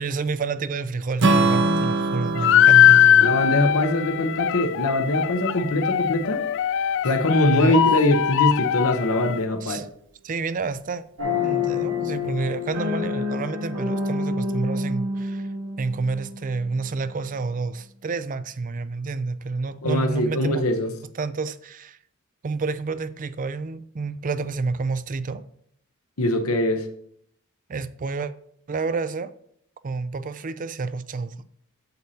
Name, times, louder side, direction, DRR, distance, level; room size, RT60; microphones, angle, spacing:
voice 1, 0.0-3.4 7.5-7.8 9.6-9.9 10.2-11.0 11.4-15.5 15.8-20.6 21.1-22.0 22.4-25.4 27.7-28.3 28.7-29.3 29.8-31.3, right 4 dB, 40° right, 0.4 m, -29 dB
Strum, 1.2-5.4, right 2 dB, 55° right, 0.9 m, -25 dB
sound 1, 2.4-9.4, left 10 dB, 60° left, 0.3 m, -20 dB
voice 2, 3.2-6.4 7.0-9.8 19.8-20.9 26.2-26.9, left 1 dB, 80° left, 0.9 m, -22 dB
sound 2, 11.2-16.6, left 4 dB, 85° right, 1.5 m, -28 dB
8.2 x 7.9 x 2.8 m
head